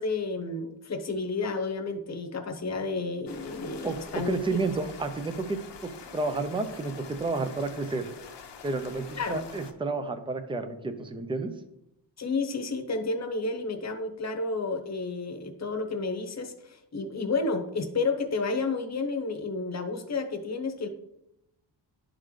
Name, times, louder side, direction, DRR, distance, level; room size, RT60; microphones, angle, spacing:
voice 1, 0.0-4.4 9.2-9.5 12.2-20.9, left 3 dB, 35° left, 5 dB, 1.0 m, -31 dB
sound 1, 3.3-9.7, left 6 dB, 65° left, 0.9 m, -46 dB
voice 2, 4.3-5.6 6.1-6.9 7.2-8.1 8.6-11.5, right 3 dB, 10° right, 8 dB, 0.5 m, -30 dB
11.5 x 3.9 x 3.2 m, 0.84 s
cardioid pair, 120°, 46 cm